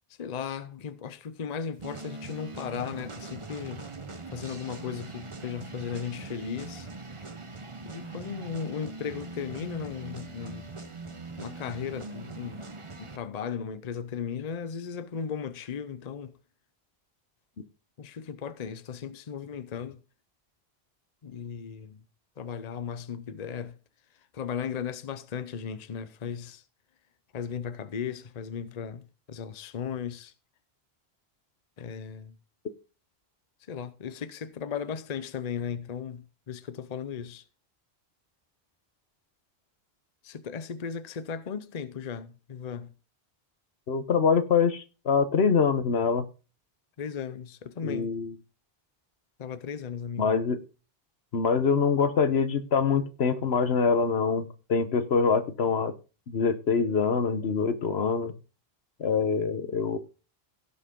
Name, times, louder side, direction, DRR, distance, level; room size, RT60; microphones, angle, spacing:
voice 1, 0.2-3.9 4.3-6.9 7.8-10.7 11.4-12.7 13.0-16.3 18.0-20.0 21.2-22.0 22.4-23.8 24.3-26.6 27.3-30.3 31.8-32.4 33.7-37.4 40.2-42.9 47.0-48.1 49.4-50.3, left 7 dB, 45° left, 0.8 m, -36 dB
sound 1, 1.8-13.2, right 3 dB, 30° right, 1.0 m, -42 dB
voice 2, 43.9-46.3 47.8-48.4 50.2-50.6 51.3-55.9 56.3-58.3 59.0-60.0, left 5 dB, 80° left, 1.3 m, -25 dB
17.0 x 6.3 x 3.7 m
omnidirectional pair, 1.0 m